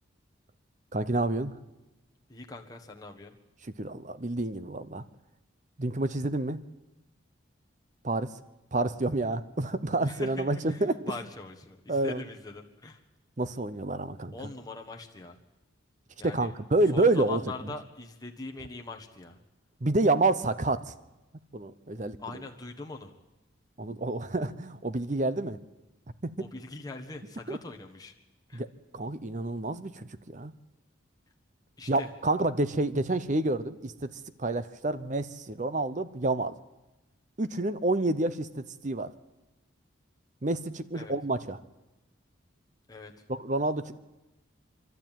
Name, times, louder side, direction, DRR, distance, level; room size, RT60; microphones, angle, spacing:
voice 1, 0.9-1.5 3.8-5.0 5.8-6.6 8.0-8.3 8.7-11.0 11.9-12.2 13.4-14.3 16.2-17.4 19.8-20.9 21.5-22.2 23.8-25.6 26.2-26.3 27.5-27.6 28.5-28.7 28.9-30.5 31.9-34.1 34.4-36.5 37.4-39.1 40.4-41.6 43.3-44.0, right 2 dB, 35° right, 13 dB, 0.7 m, -28 dB
voice 2, 2.3-3.4 10.0-13.0 14.3-15.4 16.2-16.5 16.9-19.4 22.2-23.1 26.4-28.1 28.5-28.6 31.8-32.1 40.9-41.1 42.9-43.2, left 3 dB, 20° left, 2 dB, 1.4 m, -42 dB
26.0 x 12.0 x 9.1 m, 1.0 s
head